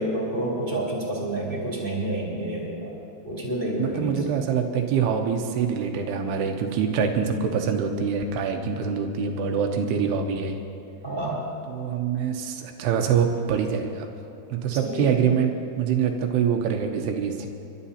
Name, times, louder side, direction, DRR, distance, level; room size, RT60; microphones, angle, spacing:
voice 1, 0.0-2.9 3.2-4.2 11.0-11.4 14.8-15.2, right 1 dB, 5° left, -5 dB, 2.3 m, -29 dB
voice 2, 3.8-10.6 11.7-14.1 14.5-17.5, right 7 dB, 75° right, 4 dB, 2.8 m, -25 dB
29.5 x 12.0 x 2.9 m, 2.8 s
omnidirectional pair, 5.2 m